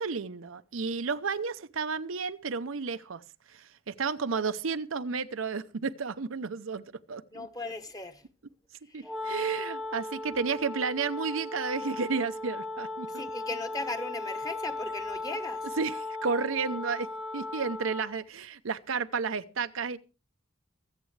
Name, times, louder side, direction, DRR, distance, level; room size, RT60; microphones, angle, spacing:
voice 1, 0.0-3.2 3.5-7.5 8.9-13.2 15.8-20.0, right 5 dB, 85° right, 0.7 m, -32 dB
voice 2, 7.3-8.2 8.8-9.1 13.1-15.7, left 2 dB, 20° left, 1.2 m, -37 dB
Wind instrument woodwind instrument, 9.0-18.2, left 2 dB, ahead, 0.8 m, -37 dB
24.5 x 8.2 x 3.2 m
head